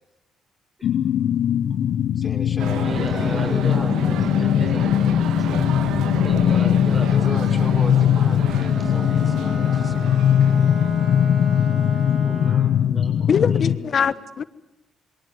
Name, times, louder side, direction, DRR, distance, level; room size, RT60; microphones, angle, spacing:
sound 1, 0.8-13.8, left 9 dB, 70° left, 1.0 m, -20 dB
voice 1, 2.2-3.7 5.4-5.6 7.1-10.2, left 3 dB, 25° left, 3 dB, 4.2 m, -37 dB
sound 2, 2.6-12.5, right 9 dB, 85° right, 1.6 m, -32 dB
voice 2, 2.7-5.3 6.2-7.7 12.2-14.0, equal, 10° right, 1 dB, 7.4 m, -35 dB
Bowed string instrument, 8.5-12.8, equal, 45° right, 7.3 m, -36 dB
voice 3, 13.3-14.4, left 7 dB, 50° left, 15 dB, 1.2 m, -22 dB
27.5 x 22.5 x 9.5 m, 0.95 s
cardioid pair, 90°, 0 cm